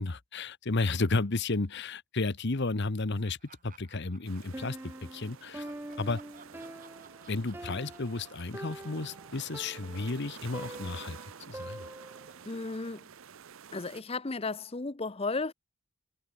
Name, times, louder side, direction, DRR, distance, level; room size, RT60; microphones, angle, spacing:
voice 1, 0.0-3.4 3.6-5.7 6.0-6.2 7.3-11.2 11.5-11.8, left 3 dB, 50° left, 1.0 m, -32 dB
Laughter, 3.2-5.0 5.4-9.8 10.1-13.7, right 5 dB, 35° right, 7.0 m, -60 dB
sound 1, 4.2-14.0, right 6 dB, 60° right, 0.7 m, -50 dB
Piano, 4.5-12.4, right 1 dB, 10° right, 0.5 m, -45 dB
voice 2, 12.5-13.1 13.7-15.5, left 3 dB, 25° left, 0.7 m, -34 dB
head